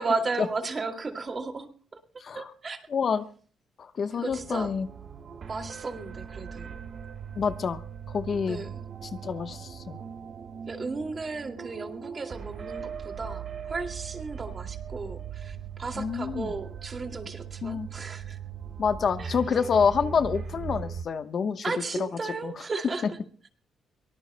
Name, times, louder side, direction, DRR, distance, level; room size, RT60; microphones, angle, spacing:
voice 1, 0.0-1.7 2.3-2.8 4.2-4.7 5.5-6.8 8.5-8.8 10.7-18.4 19.2-19.4 21.6-23.2, right 3 dB, 35° right, 5 dB, 2.3 m, -34 dB
voice 2, 2.9-3.2 3.8-4.9 7.4-7.8 8.1-8.6 9.0-10.0 15.9-16.5 17.6-17.9 18.8-21.6 22.0-22.1 22.4-22.5, left 6 dB, 50° left, 10 dB, 1.0 m, -27 dB
sound 1, 4.3-21.1, right 7 dB, 50° right, 1.2 m, -39 dB
23.5 x 19.0 x 2.2 m, 0.42 s
cardioid pair, 90°, 0 cm